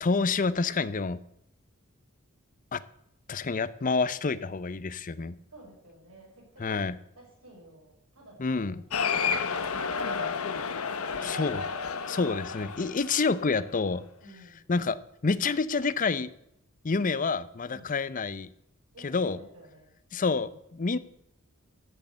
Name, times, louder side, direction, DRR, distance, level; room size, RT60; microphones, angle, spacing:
voice 1, 0.0-1.2 2.7-2.8 3.3-5.3 6.6-6.9 8.4-8.8 11.2-11.6 12.1-14.0 14.7-15.0 15.2-16.3 16.8-18.5 19.0-19.4 20.1-21.0, left 4 dB, 40° left, 16 dB, 0.6 m, -28 dB
voice 2, 5.5-6.8 7.2-9.3 10.9-11.4 12.0-12.6 14.2-14.6 17.7-17.9 18.9-19.9, right 1 dB, 90° right, -3 dB, 6.5 m, -52 dB
Cheering, 8.9-13.7, left 5 dB, 90° left, 1.0 m, -31 dB
14.0 x 6.5 x 7.9 m, 0.76 s
head